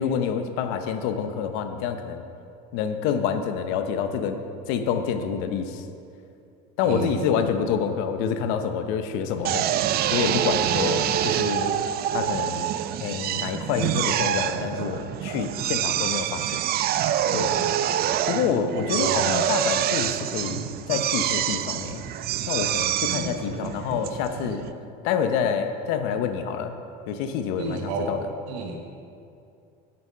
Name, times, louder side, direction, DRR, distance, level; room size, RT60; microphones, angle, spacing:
voice 1, 0.0-2.2 2.7-4.4 4.7-5.9 6.8-11.8 12.1-12.7 13.0-16.6 17.3-17.6 18.3-22.0 22.5-24.7 25.0-26.7 27.1-28.3, left 7 dB, 75° left, 8 dB, 0.8 m, -27 dB
voice 2, 6.8-7.5 10.6-11.0 17.5-17.7 18.7-19.4 23.1-23.4 27.6-28.2 28.5-28.8, right 4 dB, 85° right, 1 dB, 1.3 m, -31 dB
Drill, 9.4-24.7, right 11 dB, 50° right, 0.5 m, -26 dB
8.7 x 8.0 x 5.5 m, 2.6 s
supercardioid pair, 100°, 21 cm